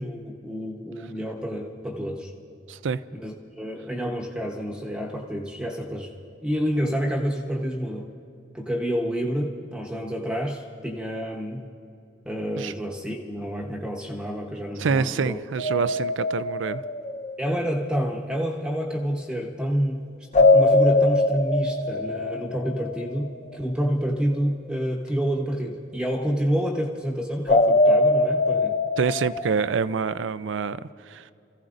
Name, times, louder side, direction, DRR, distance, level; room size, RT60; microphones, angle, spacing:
voice 1, 0.0-2.3 3.2-6.1 6.4-8.1 8.5-11.7 12.2-15.4 17.4-20.1 20.4-28.8, equal, 5° right, -1 dB, 1.0 m, -28 dB
voice 2, 2.7-3.0 12.6-12.7 14.8-16.8 29.0-31.3, right 5 dB, 80° right, 15 dB, 0.4 m, -26 dB
sound 1, 15.6-17.7 20.3-23.2 27.5-29.7, left 2 dB, 35° left, 0.7 m, -22 dB
29.5 x 15.5 x 2.6 m, 2.7 s
head